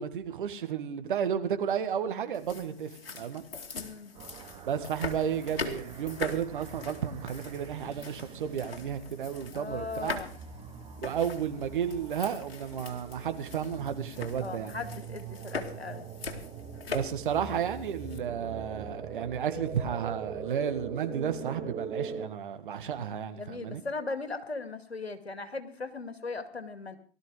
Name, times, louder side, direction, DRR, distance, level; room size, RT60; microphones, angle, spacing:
voice 1, 0.0-3.4 4.7-10.2 11.0-14.7 16.9-23.8, right 8 dB, 55° right, 1.8 m, -32 dB
sound 1, 2.3-18.2, left 4 dB, 65° left, 2.4 m, -42 dB
voice 2, 3.7-4.1 9.5-10.3 14.4-16.1 23.4-27.0, left 3 dB, 80° left, 2.2 m, -38 dB
sound 2, 4.1-22.3, right 6 dB, 15° right, 1.2 m, -43 dB
18.0 x 13.0 x 4.9 m
figure-of-eight pair, 120°, 31 cm